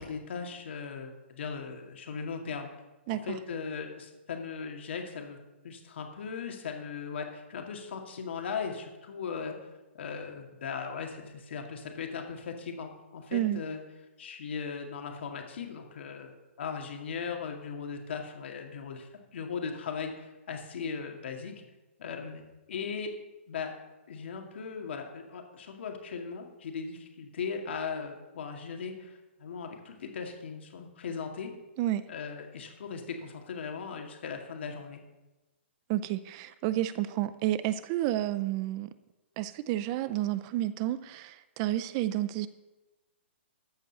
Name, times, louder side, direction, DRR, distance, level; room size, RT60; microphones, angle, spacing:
voice 1, 0.0-2.7 3.1-5.4 5.6-9.7 9.9-13.8 14.2-21.5 22.0-22.4 22.7-23.1 23.5-23.7 24.1-31.5 32.1-35.0, left 6 dB, 60° left, 2.2 m, -38 dB
voice 2, 13.3-13.6 31.8-32.0 35.9-38.9 39.4-42.5, right 14 dB, 25° right, 0.5 m, -30 dB
13.5 x 5.4 x 6.7 m
hypercardioid pair, 165°, 7 cm